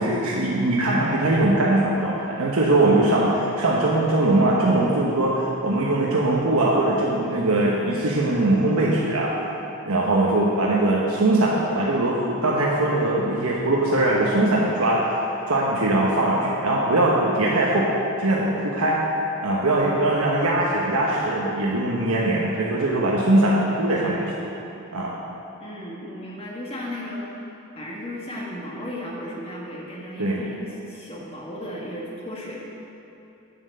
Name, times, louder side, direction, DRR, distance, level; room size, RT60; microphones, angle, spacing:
voice 1, 0.0-9.5 9.8-15.2 15.5-17.9 18.2-19.0 19.4-24.3 24.9-25.1 30.2-30.4, right 2 dB, 85° right, -4 dB, 1.1 m, -21 dB
voice 2, 25.6-27.3 27.7-32.5, left 1 dB, 25° left, -4 dB, 1.6 m, -35 dB
8.9 x 7.3 x 6.6 m, 2.9 s
head